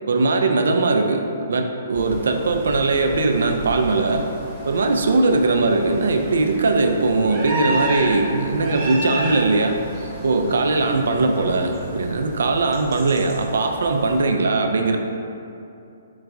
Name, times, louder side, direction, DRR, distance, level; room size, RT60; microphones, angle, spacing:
voice 1, 0.1-4.3 4.7-9.8 10.2-15.0, right 3 dB, 75° right, 4 dB, 0.3 m, -20 dB
sound 1, 1.9-14.2, right 1 dB, 25° right, 0.9 m, -32 dB
3.9 x 3.3 x 2.4 m, 2.7 s
hypercardioid pair, 140°, 0 cm